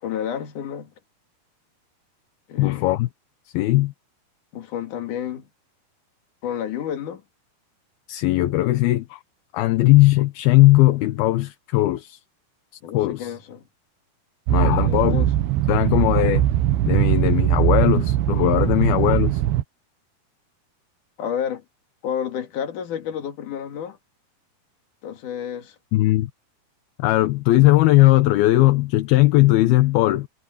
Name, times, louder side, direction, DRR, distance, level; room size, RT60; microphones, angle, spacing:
voice 1, 0.0-0.9 2.5-3.0 4.5-5.5 6.4-7.2 12.8-13.7 14.7-15.3 21.2-21.6 22.0-24.0 25.0-25.8, left 9 dB, 55° left, 3.4 m, -30 dB
voice 2, 2.6-3.1 3.5-3.9 8.1-9.2 9.5-12.2 12.9-13.3 14.5-15.2 15.7-16.5 16.9-19.4 25.9-26.3 27.0-30.3, left 17 dB, 80° left, 2.6 m, -18 dB
sound 1, 14.5-19.6, right 13 dB, 90° right, 2.9 m, -20 dB
omnidirectional pair, 4.6 m